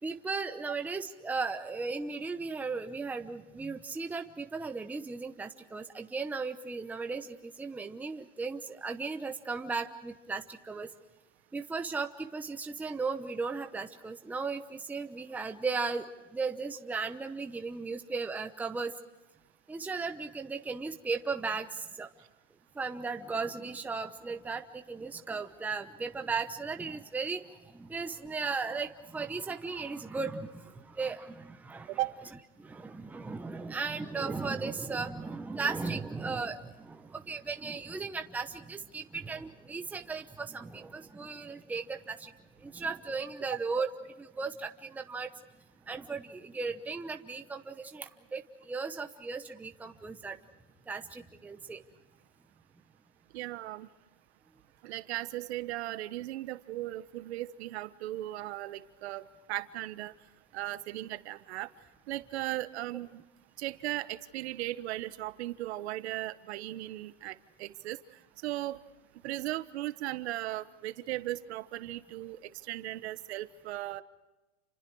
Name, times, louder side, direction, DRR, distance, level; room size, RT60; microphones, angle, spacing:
voice 1, 0.0-10.9 11.5-16.1 16.3-18.9 19.7-22.1 22.7-32.0 32.6-42.3 42.6-45.3 45.9-50.4 50.9-51.8, right 4 dB, 5° right, 5 dB, 0.9 m, -36 dB
voice 2, 53.3-53.9 54.8-60.1 60.5-61.7 62.1-63.2 63.6-68.0 68.4-68.8 69.2-74.0, right 16 dB, 60° right, 13 dB, 1.3 m, -37 dB
29.0 x 26.0 x 4.8 m, 1.1 s
supercardioid pair, 150°, 37 cm